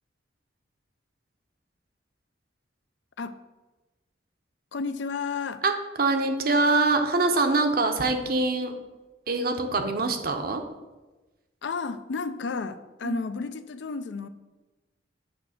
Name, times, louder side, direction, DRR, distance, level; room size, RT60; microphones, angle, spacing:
voice 1, 4.7-5.6 11.6-14.3, left 4 dB, 70° left, 11 dB, 0.4 m, -32 dB
voice 2, 5.6-8.8 9.3-10.6 13.0-13.2, right 3 dB, 50° right, 6 dB, 0.7 m, -24 dB
8.0 x 3.4 x 6.4 m, 1.1 s
head